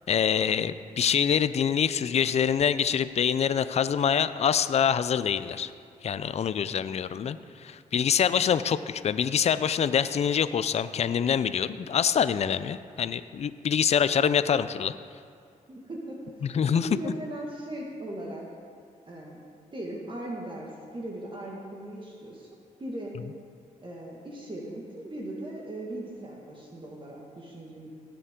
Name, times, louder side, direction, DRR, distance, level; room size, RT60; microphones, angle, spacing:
voice 1, 0.1-5.7 6.0-14.9 16.4-17.1, left 8 dB, 50° left, 13 dB, 0.4 m, -25 dB
voice 2, 15.7-18.4 19.1-19.4 19.7-22.5 22.8-23.2 23.8-27.9, right 1 dB, 35° right, -2 dB, 1.9 m, -38 dB
17.5 x 6.9 x 3.8 m, 2.2 s
cardioid pair, 65°, 14 cm